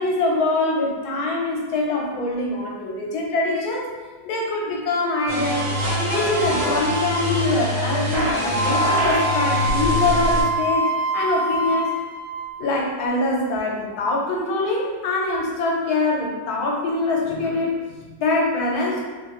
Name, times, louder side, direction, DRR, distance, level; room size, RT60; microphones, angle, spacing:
voice 1, 0.0-3.9 4.2-10.9 11.1-11.9 12.6-19.1, left 2 dB, 75° left, -2 dB, 1.2 m, -24 dB
sound 1, 5.3-10.4, equal, 60° right, 1.3 m, -24 dB
Wind instrument woodwind instrument, 8.5-12.7, right 1 dB, 90° right, 1.3 m, -24 dB
3.0 x 2.7 x 2.9 m, 1.3 s
omnidirectional pair, 1.7 m